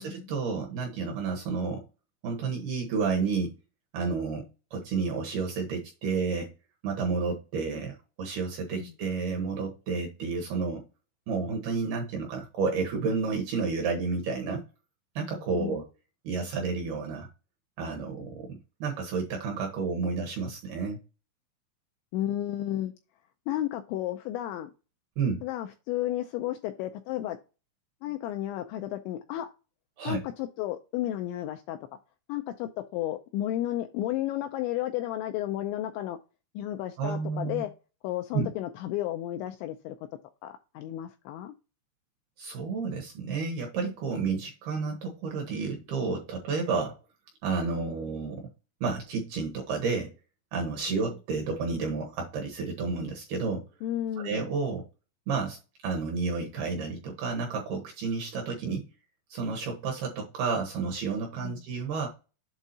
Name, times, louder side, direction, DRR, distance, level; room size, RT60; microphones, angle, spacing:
voice 1, 0.0-1.8 2.2-3.5 3.9-6.5 6.8-10.8 11.3-14.6 15.2-15.9 16.2-17.3 17.8-21.0 25.2-25.4 30.0-30.2 37.0-37.6 38.3-38.5 42.4-47.0 47.4-48.5 48.8-50.1 50.5-53.7 54.2-54.9 55.3-58.9 59.3-62.1, right 4 dB, 70° right, 2.5 m, -31 dB
voice 2, 22.1-22.9 23.5-24.7 25.4-27.4 28.0-29.5 30.0-31.8 32.3-36.2 36.6-37.7 38.0-40.0 40.4-41.5 50.9-51.0 53.8-54.4 61.4-61.6, left 13 dB, 90° left, 2.6 m, -32 dB
8.2 x 3.6 x 4.1 m
omnidirectional pair, 5.8 m